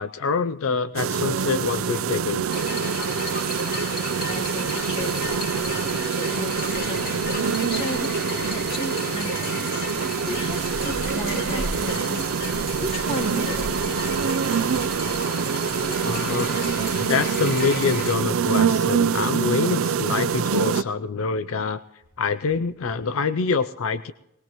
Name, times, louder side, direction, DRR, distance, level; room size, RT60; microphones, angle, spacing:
voice 1, 0.0-2.5 15.9-16.7 17.0-21.8 22.2-24.1, left 4 dB, 75° left, 14 dB, 0.5 m, -25 dB
sound 1, 1.0-20.8, right 6 dB, 80° right, 0.5 m, -25 dB
sound 2, 2.5-18.1, left 2 dB, 45° left, 2.7 m, -33 dB
voice 2, 4.3-14.0, left 1 dB, 30° left, 0 dB, 2.9 m, -35 dB
20.0 x 19.5 x 3.0 m, 0.90 s
head